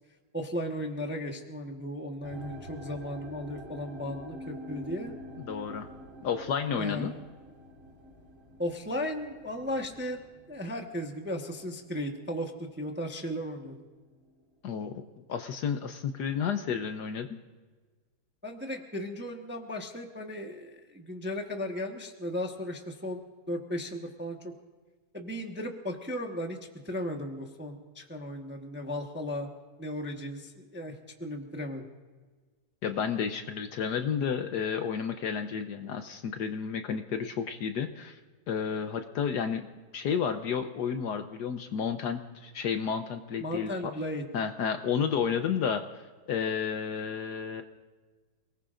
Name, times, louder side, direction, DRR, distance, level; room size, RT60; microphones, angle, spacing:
voice 1, 0.3-5.1 6.8-7.1 8.6-10.2 10.5-13.9 18.4-24.5 25.1-26.6 26.8-29.5 29.8-31.9 43.4-44.2, equal, 10° right, 2 dB, 0.8 m, -36 dB
sound 1, 2.2-13.4 13.6-14.3 14.9-15.0, equal, 45° right, 4.6 m, -47 dB
voice 2, 5.4-5.9 6.2-7.1 14.6-15.0 15.3-17.4 32.8-38.2 38.5-39.7 39.9-43.7 44.3-45.8 46.3-47.6, left 7 dB, 65° left, 7 dB, 1.2 m, -31 dB
28.0 x 19.0 x 2.5 m, 1.4 s
omnidirectional pair, 2.2 m